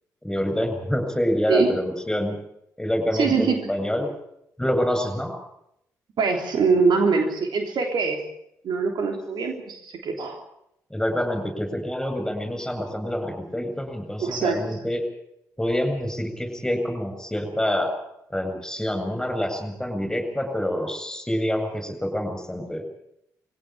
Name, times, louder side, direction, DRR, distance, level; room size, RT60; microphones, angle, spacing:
voice 1, 0.2-2.4 2.8-4.1 4.6-5.3 10.9-15.0 15.6-17.9 18.3-22.8, equal, 5° left, 7 dB, 7.7 m, -26 dB
voice 2, 3.2-3.5 6.2-8.2 8.6-10.4 14.2-14.6, right 4 dB, 60° right, 3 dB, 3.3 m, -23 dB
22.0 x 17.0 x 8.9 m, 0.78 s
hypercardioid pair, 40°, 8 cm